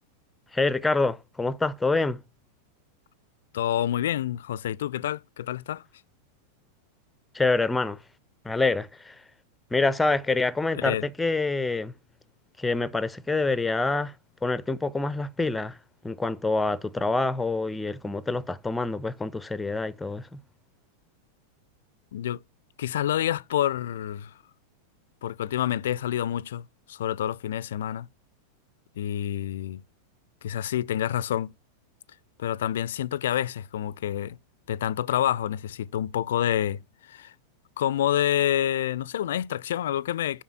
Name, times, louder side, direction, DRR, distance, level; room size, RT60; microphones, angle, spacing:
voice 1, 0.5-2.2 7.3-8.0 8.4-9.1 9.7-11.9 12.6-14.1 14.4-15.8 16.0-20.4, left 3 dB, 10° left, 0.5 m, -26 dB
voice 2, 3.5-5.8 10.7-11.1 22.1-22.4 22.8-24.3 25.2-28.1 29.0-29.8 30.4-31.5 32.4-34.4 34.7-37.3 37.8-40.4, left 11 dB, 60° left, 0.4 m, -28 dB
7.3 x 5.6 x 5.7 m
figure-of-eight pair, 90°, 0 cm